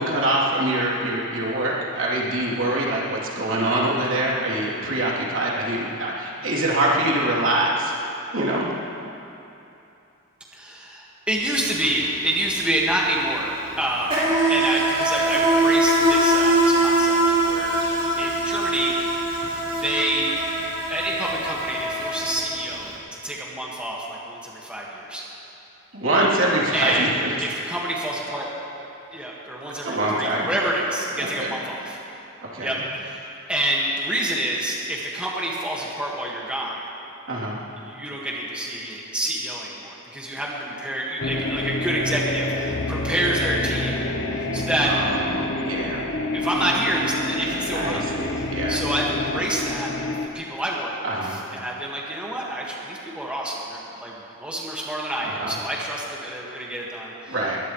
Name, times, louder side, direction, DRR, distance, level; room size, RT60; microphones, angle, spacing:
voice 1, 0.0-7.9 8.3-8.7 25.9-27.3 29.8-30.5 31.2-31.5 32.5-32.8 37.3-37.6 44.8-46.1 47.7-48.8 51.0-51.4 55.2-55.6 57.3-57.6, right 1 dB, 75° right, -5 dB, 3.3 m, -24 dB
voice 2, 10.5-17.8 18.2-19.0 19.7-20.4 20.9-23.0 23.2-25.2 26.7-28.5 29.1-32.0 32.6-32.8 33.0-36.8 37.8-44.1 44.4-44.9 46.3-48.0 48.3-54.1 54.4-57.4, right 1 dB, 5° right, -5 dB, 1.8 m, -27 dB
Insect, 11.4-11.6 11.8-22.8, right 1 dB, 30° right, 4.3 m, -22 dB
sound 1, 41.2-50.3, left 2 dB, 75° left, 1.0 m, -28 dB
22.0 x 20.0 x 3.2 m, 2.9 s
head